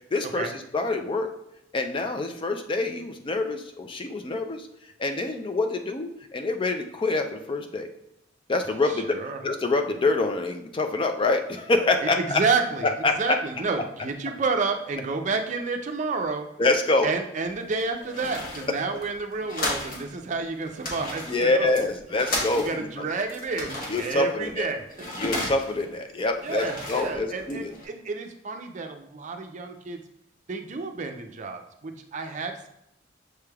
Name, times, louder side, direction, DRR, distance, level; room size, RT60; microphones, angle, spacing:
voice 1, 0.1-1.3 1.7-4.7 5.0-7.9 8.5-12.4 12.8-13.4 16.6-17.1 21.3-22.9 23.9-24.6 25.2-27.7, left 2 dB, 30° left, 6 dB, 0.4 m, -26 dB
voice 2, 8.9-9.4 12.0-16.5 17.0-21.9 22.5-24.8 26.4-30.0 30.5-32.7, right 4 dB, 40° right, 5 dB, 0.5 m, -30 dB
sound 1, 17.5-20.1 20.3-20.4 20.7-23.0 23.3-25.9 26.3-27.8, left 1 dB, 50° left, 1.2 m, -34 dB
6.7 x 3.3 x 2.3 m, 0.81 s
head